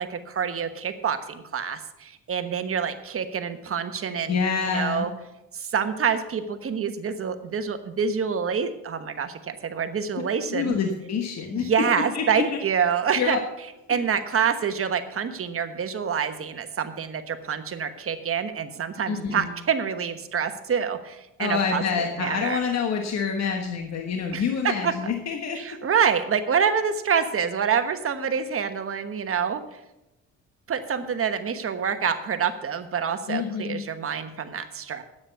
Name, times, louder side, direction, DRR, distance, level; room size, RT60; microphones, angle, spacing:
voice 1, 0.0-4.4 4.7-5.1 5.5-10.7 11.5-13.4 13.9-22.6 24.3-24.9 25.6-29.6 30.7-35.0, right 7 dB, 45° right, 8 dB, 1.2 m, -27 dB
voice 2, 4.2-5.1 10.5-11.7 11.9-12.6 13.1-13.4 13.9-14.0 19.1-19.5 21.4-25.8 33.3-33.8, left 6 dB, 60° left, 4 dB, 1.4 m, -27 dB
9.8 x 8.6 x 6.7 m, 0.92 s
cardioid pair, 90°, 30 cm